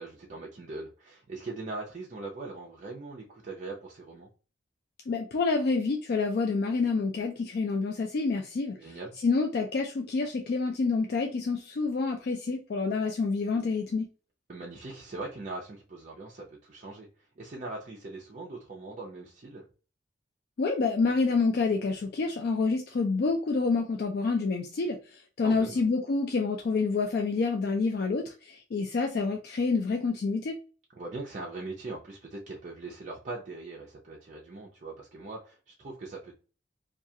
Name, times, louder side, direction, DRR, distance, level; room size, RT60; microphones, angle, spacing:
voice 1, 0.0-4.3 8.7-9.1 14.5-17.1 17.4-19.6 25.4-25.8 30.9-36.3, right 2 dB, 40° right, 0.5 m, -41 dB
voice 2, 5.1-8.8 9.2-14.1 20.6-25.0 25.4-30.6, left 4 dB, 55° left, 0.3 m, -28 dB
2.3 x 2.3 x 2.7 m
head